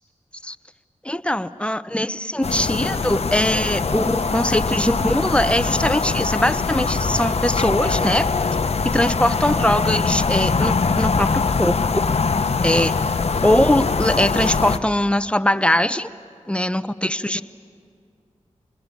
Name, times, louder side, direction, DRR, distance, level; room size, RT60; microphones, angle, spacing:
voice 1, 1.0-8.3 8.9-11.8 12.6-12.9 13.4-16.1 16.5-17.4, left 1 dB, 10° left, 12 dB, 0.9 m, -21 dB
sound 1, 2.4-14.8, left 4 dB, 55° left, 1.0 m, -22 dB
26.5 x 20.5 x 8.4 m, 2.3 s
cardioid pair, 45°, 12 cm